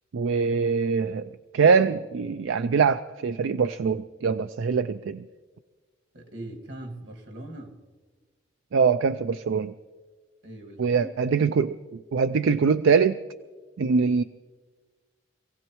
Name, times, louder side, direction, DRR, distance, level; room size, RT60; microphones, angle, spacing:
voice 1, 0.1-5.3 8.7-9.7 10.8-13.2 13.8-14.2, right 5 dB, 85° right, 0.4 m, -23 dB
voice 2, 6.1-7.8 10.4-11.5, right 1 dB, 65° right, 1.9 m, -41 dB
26.5 x 17.0 x 3.1 m
head